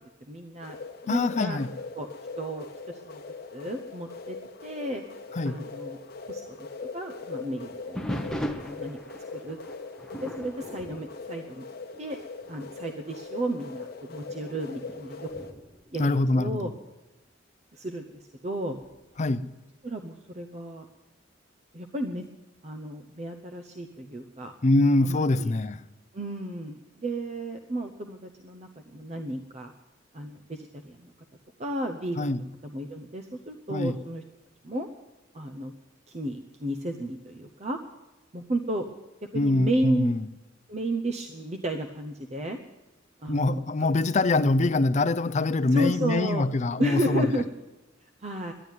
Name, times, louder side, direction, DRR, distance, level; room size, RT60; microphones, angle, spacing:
voice 1, 0.3-0.8 1.0-1.6 1.9-2.1 2.4-3.2 3.5-4.4 4.6-5.0 5.4-6.0 6.3-6.6 6.9-8.0 8.3-9.0 9.3-9.6 10.2-11.6 12.0-12.2 12.5-15.3 15.9-16.7 17.7-18.8 19.8-20.9 21.7-22.3 22.6-24.5 25.1-25.5 26.1-29.7 30.1-31.1 31.6-32.3 32.6-34.2 34.6-34.9 35.3-35.7 36.1-37.8 38.3-38.9 39.3-40.1 40.7-42.6 43.2-43.6 45.7-46.4 46.8-47.4 48.2-48.5, right 1 dB, 35° right, 0.7 m, -33 dB
sound 1, 0.6-15.5, left 4 dB, 55° left, 1.0 m, -41 dB
voice 2, 1.1-1.7 5.3-5.6 16.0-16.7 19.2-19.5 24.6-25.9 32.2-32.4 33.7-34.0 39.3-40.3 43.3-47.4, left 2 dB, 35° left, 0.5 m, -24 dB
sound 2, 7.9-12.1 12.4-12.8 13.4-13.5 14.2-16.9 18.8-19.3, equal, 5° left, 0.9 m, -39 dB
11.0 x 11.0 x 9.2 m
head